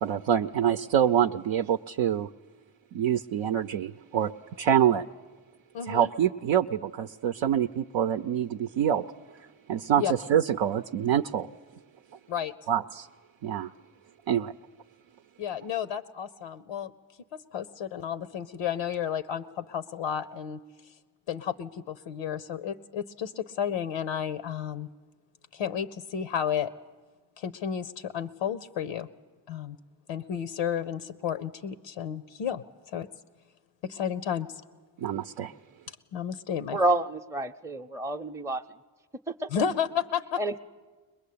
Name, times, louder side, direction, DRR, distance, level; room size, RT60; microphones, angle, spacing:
voice 1, 0.0-2.3 2.9-4.3 4.6-5.0 5.9-9.1 9.7-11.5 12.7-13.1 13.4-13.7 14.3-14.5 35.0-35.5, right 9 dB, 70° right, 0.6 m, -26 dB
voice 2, 5.7-6.1 10.0-10.1 12.3-12.5 15.4-16.9 17.3-20.6 21.3-24.9 25.5-26.7 27.4-29.1 29.5-29.8 30.1-32.6 32.9-33.1 33.8-34.5 36.1-36.8 39.5-40.4, left 8 dB, 85° left, 0.7 m, -32 dB
voice 3, 36.7-38.6 39.3-39.5 40.4-40.6, right 2 dB, 5° right, 0.6 m, -28 dB
21.5 x 21.0 x 8.5 m
cardioid pair, 65°, 49 cm